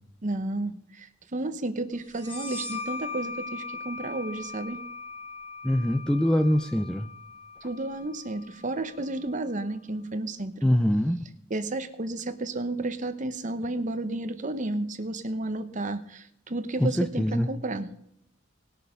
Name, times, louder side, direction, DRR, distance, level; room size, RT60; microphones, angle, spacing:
voice 1, 0.2-4.8 7.6-10.7 11.5-17.9, right 2 dB, 40° right, 10 dB, 0.9 m, -32 dB
sound 1, 2.1-9.5, left 4 dB, 25° left, 2.2 m, -40 dB
voice 2, 5.6-7.1 10.6-11.2 16.8-17.5, equal, 5° left, 8 dB, 0.5 m, -23 dB
19.5 x 6.6 x 5.2 m, 0.75 s
head